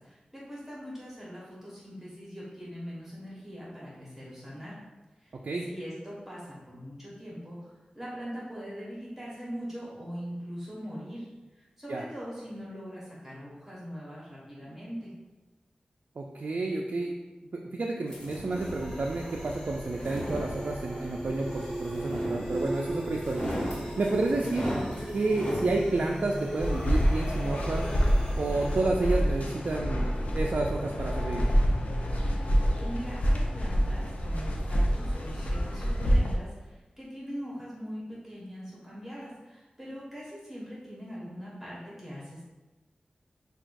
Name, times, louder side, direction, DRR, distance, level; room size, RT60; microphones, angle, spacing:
voice 1, 0.0-4.8 5.2-5.4 5.6-11.3 11.5-15.1 32.8-42.4, equal, 10° right, -7 dB, 1.1 m, -41 dB
voice 2, 16.2-17.1 17.7-23.5 24.0-24.7 25.1-27.9 28.4-31.5, right 2 dB, 65° right, -1 dB, 0.3 m, -30 dB
sound 1, 18.1-18.8 19.7-21.0 21.9-22.8 23.1-25.7, equal, 40° left, 1.2 m, -36 dB
sound 2, 18.5-28.8, equal, 15° left, 1.4 m, -37 dB
sound 3, 26.6-36.4, equal, 65° left, 0.5 m, -27 dB
5.7 x 2.3 x 2.5 m, 1.1 s
wide cardioid pair, 70°, 3 cm